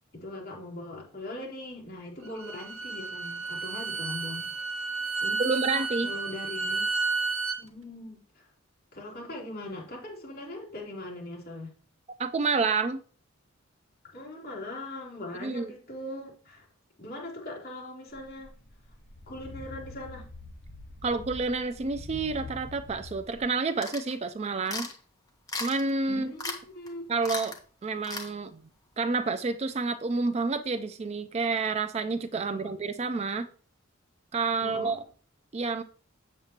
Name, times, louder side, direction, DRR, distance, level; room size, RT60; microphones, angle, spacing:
voice 1, 0.1-4.5 5.2-6.9 7.6-8.5 8.9-11.7 14.0-16.7 17.0-18.5 19.3-20.3 26.1-27.1 32.5-32.7 34.6-35.0, left 1 dB, 45° left, 2.9 m, -40 dB
Bowed string instrument, 2.2-7.6, right 4 dB, 70° right, 1.1 m, -32 dB
voice 2, 5.4-6.1 12.2-13.0 15.4-15.7 21.0-24.9 25.6-26.3 27.1-27.5 27.8-28.6 29.0-33.5 34.3-35.0 35.5-35.8, right 4 dB, 30° right, 0.4 m, -29 dB
sound 1, 18.1-23.5, left 2 dB, 65° left, 3.6 m, -45 dB
sound 2, 23.8-24.1 24.7-24.9 25.5-25.9 26.4-26.6 26.9-27.0 27.2-27.6 28.0-28.3, left 3 dB, 15° left, 1.0 m, -35 dB
7.7 x 7.3 x 2.8 m
head